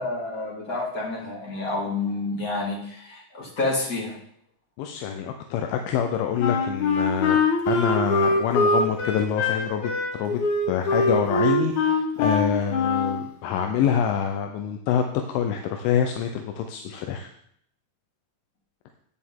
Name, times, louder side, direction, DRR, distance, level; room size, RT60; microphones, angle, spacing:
voice 1, 0.0-4.2, left 2 dB, 35° left, -3 dB, 1.4 m, -29 dB
voice 2, 4.8-7.4 7.7-10.4 10.7-17.3, left 8 dB, 85° left, 5 dB, 3.2 m, -26 dB
Wind instrument woodwind instrument, 6.4-13.2, left 3 dB, 70° left, 1.8 m, -23 dB
11.0 x 9.3 x 3.7 m, 0.66 s
omnidirectional pair, 5.5 m